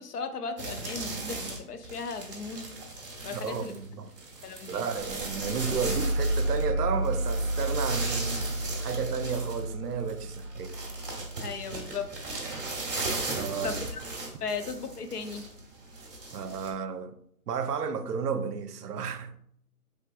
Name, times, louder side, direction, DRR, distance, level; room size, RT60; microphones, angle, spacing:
voice 1, 0.0-2.7 3.2-3.8 4.4-4.9 11.4-12.1 13.6-13.8 14.4-15.4, left 5 dB, 75° left, 0.7 m, -36 dB
sound 1, 0.6-6.7 7.0-16.7, right 2 dB, 35° right, 0.9 m, -37 dB
voice 2, 3.3-4.1 4.7-10.8 13.3-13.8 16.3-17.2 17.5-19.4, right 6 dB, 80° right, 0.6 m, -33 dB
sound 2, 4.9-14.1, right 1 dB, 5° left, 1.2 m, -32 dB
3.5 x 3.1 x 2.2 m
hypercardioid pair, 165°, 46 cm